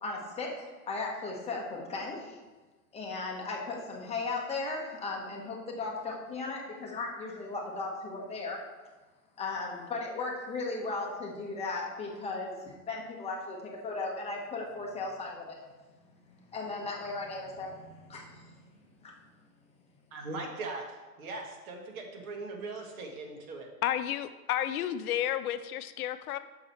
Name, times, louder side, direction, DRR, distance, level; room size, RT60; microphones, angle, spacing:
voice 1, 0.0-2.4 2.9-8.6 9.4-12.5 12.9-15.6 16.5-18.6 19.0-19.1, left 3 dB, 15° left, -1 dB, 0.9 m, -36 dB
voice 2, 20.1-23.7, right 3 dB, 65° right, 1 dB, 1.7 m, -40 dB
voice 3, 23.8-26.4, left 11 dB, 70° left, 11 dB, 0.6 m, -31 dB
6.5 x 4.6 x 5.7 m, 1.2 s
supercardioid pair, 145°, 46 cm